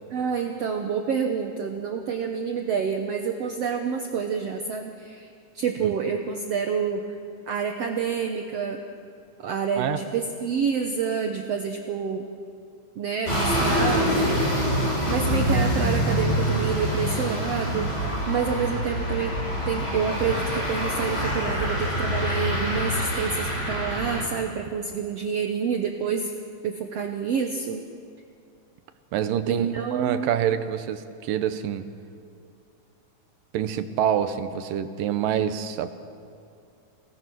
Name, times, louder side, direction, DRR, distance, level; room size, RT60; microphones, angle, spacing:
voice 1, 0.1-5.3 5.5-7.0 7.5-8.8 9.4-12.3 12.9-14.3 15.1-19.3 19.7-26.3 26.6-27.8 29.5-30.3, right 6 dB, 65° right, 4 dB, 1.7 m, -28 dB
sound 1, 13.3-24.2, equal, 20° left, 4.4 m, -25 dB
voice 2, 29.1-31.9 33.5-35.9, right 9 dB, 85° right, 10 dB, 2.7 m, -26 dB
28.0 x 19.0 x 6.2 m, 2.4 s
omnidirectional pair, 3.9 m